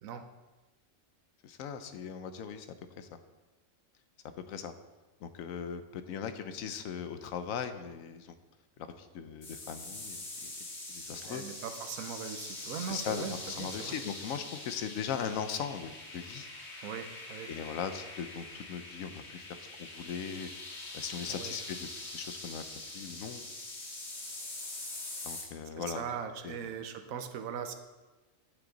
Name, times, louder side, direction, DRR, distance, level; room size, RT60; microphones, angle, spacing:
voice 1, 1.4-2.7 3.0-3.2 4.5-4.7 5.2-8.4 8.8-10.5 10.9-11.4 12.8-16.5 17.5-20.5 20.9-21.9 22.1-22.6 22.9-23.4 25.2-26.0 26.4-26.6, left 7 dB, 80° left, 10 dB, 1.1 m, -39 dB
sound 1, 9.4-25.4, left 2 dB, 55° left, 1.8 m, -44 dB
voice 2, 11.3-14.0 16.8-17.5 21.3-21.6 25.8-27.7, right 7 dB, 85° right, 7 dB, 1.1 m, -40 dB
9.0 x 7.1 x 3.9 m, 1.2 s
omnidirectional pair, 1.4 m